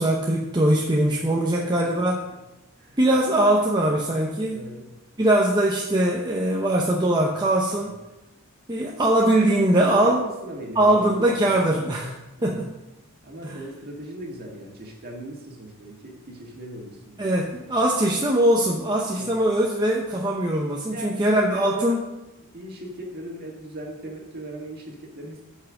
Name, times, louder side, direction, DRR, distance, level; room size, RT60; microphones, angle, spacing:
voice 1, 0.0-2.2 3.0-4.6 5.2-8.0 8.7-10.2 10.8-12.6 13.4-13.6 17.2-22.0, right 1 dB, 20° right, -2 dB, 0.8 m, -21 dB
voice 2, 1.6-1.9 2.8-3.0 4.5-4.9 7.8-7.9 9.9-10.2 10.4-11.8 12.4-12.6 13.2-17.3 17.7-17.8 19.1-19.4 20.9-21.9 22.5-25.4, right 1 dB, 45° right, 0 dB, 1.9 m, -39 dB
8.4 x 5.6 x 6.2 m, 0.97 s
head